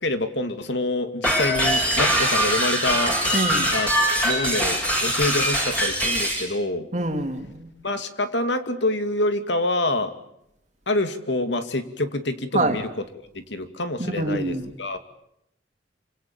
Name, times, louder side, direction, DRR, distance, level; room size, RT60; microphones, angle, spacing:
voice 1, 0.0-3.2 3.7-6.9 7.8-10.1 10.9-13.0 13.3-15.0, left 2 dB, 70° left, 9 dB, 2.5 m, -26 dB
sound 1, 1.2-6.5, equal, 10° left, 7.1 m, -22 dB
voice 2, 3.3-3.7 6.9-7.7 12.5-12.8 14.0-14.7, right 1 dB, 40° right, 5 dB, 3.1 m, -25 dB
27.0 x 26.0 x 7.2 m, 0.76 s
head